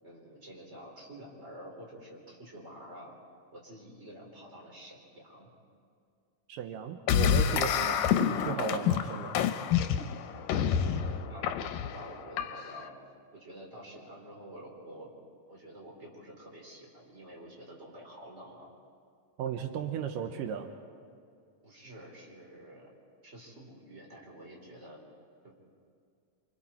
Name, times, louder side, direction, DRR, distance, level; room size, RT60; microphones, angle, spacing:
voice 1, 0.0-3.1 3.5-5.5 8.3-8.8 9.9-12.9 13.3-15.1 15.5-18.7 21.6-22.9 23.2-25.0 25.4-25.5, right 1 dB, 20° right, -1 dB, 3.9 m, -49 dB
voice 2, 6.5-9.4 19.4-20.7, right 8 dB, 80° right, 6 dB, 2.6 m, -35 dB
sound 1, 7.1-12.9, left 9 dB, 90° left, 2.5 m, -28 dB
29.0 x 25.5 x 4.3 m, 2.3 s
omnidirectional pair, 3.8 m